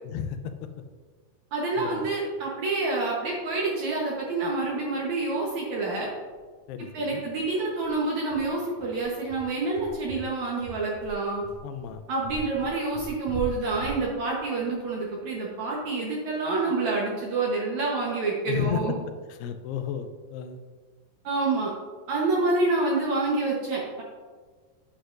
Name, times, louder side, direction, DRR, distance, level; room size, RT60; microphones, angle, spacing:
voice 1, 0.0-0.7 1.8-2.1 6.7-7.2 11.6-12.0 18.5-18.8 19.3-20.6, left 9 dB, 85° left, 8 dB, 2.7 m, -33 dB
voice 2, 1.5-6.1 6.9-11.4 12.1-19.0 21.2-21.7 22.1-24.0, right 3 dB, 65° right, -4 dB, 1.9 m, -27 dB
sound 1, 5.4-5.5 5.8-5.9 6.2-6.4 6.8-6.9 7.3-15.8, equal, 50° left, 1.5 m, -41 dB
9.7 x 8.7 x 2.6 m, 1.5 s
omnidirectional pair, 4.6 m